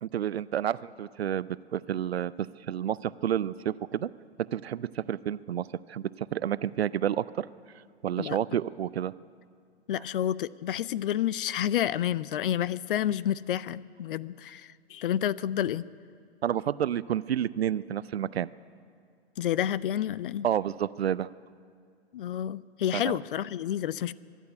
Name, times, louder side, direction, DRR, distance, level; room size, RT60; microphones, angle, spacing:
voice 1, 0.0-2.3 2.7-4.1 4.5-7.5 8.0-9.1 16.4-18.5 20.4-21.3 22.9-23.2, right 10 dB, 70° right, 18 dB, 0.6 m, -30 dB
voice 2, 9.9-15.8 19.4-20.5 22.1-24.1, left 11 dB, 55° left, 19 dB, 0.6 m, -29 dB
23.5 x 11.0 x 9.9 m, 2.2 s
figure-of-eight pair, 115°, 33 cm